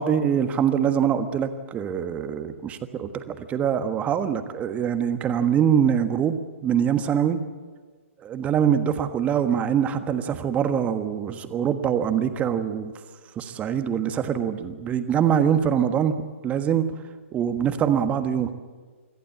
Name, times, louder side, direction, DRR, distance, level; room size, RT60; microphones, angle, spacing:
voice 1, 0.0-7.4 8.2-12.9 13.4-16.1 16.4-16.9 17.3-18.5, right 8 dB, 20° right, 9 dB, 1.4 m, -24 dB
24.5 x 15.0 x 8.6 m, 1.4 s
figure-of-eight pair, 125°, 7 cm